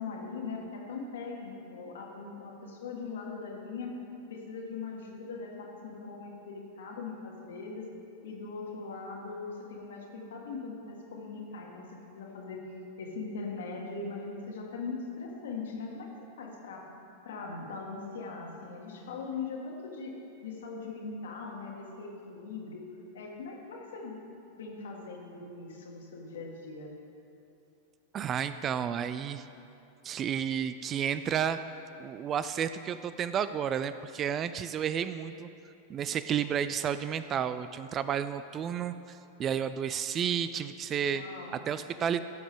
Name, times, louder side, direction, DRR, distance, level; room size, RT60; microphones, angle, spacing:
voice 1, 0.0-3.9 4.3-7.9 8.2-11.9 12.1-12.6 13.0-16.9 17.2-20.1 20.4-22.9 23.1-24.2 24.6-26.9 41.1-41.6, left 4 dB, 60° left, 0 dB, 1.7 m, -40 dB
voice 2, 28.1-29.5 30.0-31.6 32.0-35.5 35.9-41.2 41.5-42.2, right 8 dB, 30° right, 13 dB, 0.3 m, -31 dB
16.0 x 7.0 x 3.6 m, 2.8 s
figure-of-eight pair, 90°, 0 cm